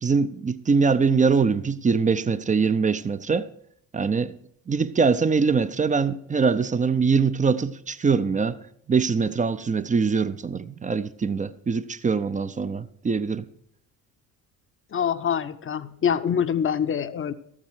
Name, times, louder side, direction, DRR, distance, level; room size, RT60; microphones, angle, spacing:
voice 1, 0.0-3.5 3.9-4.3 4.7-8.6 8.9-13.5, right 5 dB, 15° right, 0.4 m, -23 dB
voice 2, 14.9-17.3, left 8 dB, 25° left, 0.6 m, -25 dB
13.5 x 7.4 x 4.7 m
hypercardioid pair, 55°, 50 cm